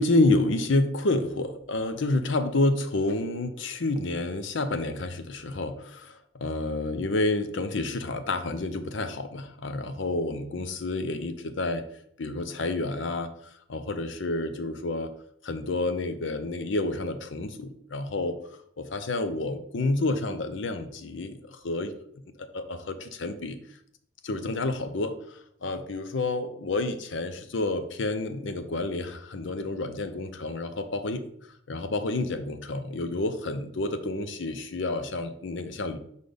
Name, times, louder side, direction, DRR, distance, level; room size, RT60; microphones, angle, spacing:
voice 1, 0.0-11.8 12.2-13.3 13.7-15.1 15.4-18.4 18.8-21.9 22.5-23.6 24.2-31.2 31.7-36.0, left 2 dB, 70° left, 9 dB, 0.7 m, -29 dB
5.3 x 4.1 x 5.0 m, 0.68 s
head